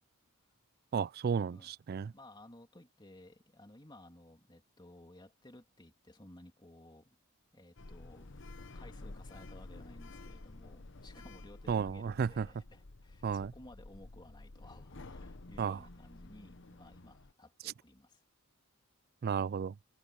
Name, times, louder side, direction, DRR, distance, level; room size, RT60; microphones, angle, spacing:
voice 1, 0.9-2.1 11.7-12.5 13.2-13.5 15.6-15.8 19.2-19.7, right 6 dB, 45° right, 0.3 m, -33 dB
voice 2, 2.0-7.2 7.5-18.2, left 1 dB, 20° left, 2.9 m, -56 dB
Sliding door, 7.8-17.3, left 2 dB, 60° left, 1.0 m, -51 dB
head